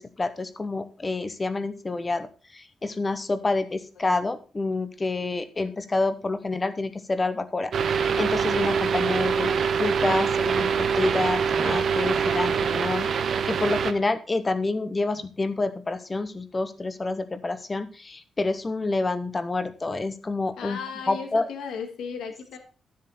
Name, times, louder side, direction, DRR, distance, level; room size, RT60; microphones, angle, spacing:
voice 1, 0.0-9.5 9.8-20.8 21.1-21.4, left 3 dB, 20° left, 12 dB, 0.8 m, -28 dB
sound 1, 7.7-13.9, right 6 dB, 50° right, 0.8 m, -24 dB
voice 2, 20.6-22.6, left 6 dB, 80° left, 5 dB, 2.0 m, -35 dB
12.5 x 7.5 x 4.2 m, 0.36 s
wide cardioid pair, 175°, 0 cm